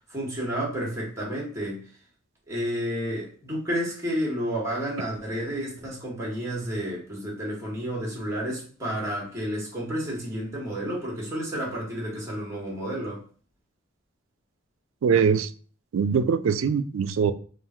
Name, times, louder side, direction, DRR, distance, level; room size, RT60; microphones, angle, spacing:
voice 1, 0.1-1.8 2.5-13.2, equal, 15° right, -3 dB, 1.6 m, -31 dB
voice 2, 15.0-15.5 15.9-17.3, right 6 dB, 80° right, 13 dB, 0.3 m, -22 dB
3.7 x 2.5 x 4.3 m, 0.43 s
head